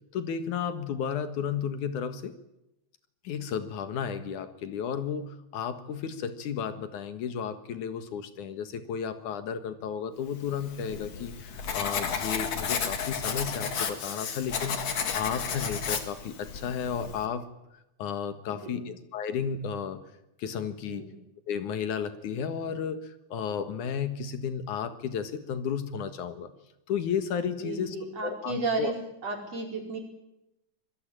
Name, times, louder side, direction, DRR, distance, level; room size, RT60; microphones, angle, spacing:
voice 1, 0.1-2.4 3.2-17.5 18.0-20.0 20.4-21.1 21.5-26.5 26.9-28.0 28.2-28.9, left 7 dB, 80° left, 10 dB, 3.1 m, -33 dB
Writing, 10.5-17.3, left 6 dB, 55° left, 3.1 m, -33 dB
voice 2, 18.5-18.9 20.9-21.1 27.5-28.9 29.2-30.0, right 3 dB, 55° right, 2 dB, 6.1 m, -33 dB
26.0 x 21.5 x 9.0 m, 0.89 s
omnidirectional pair, 3.5 m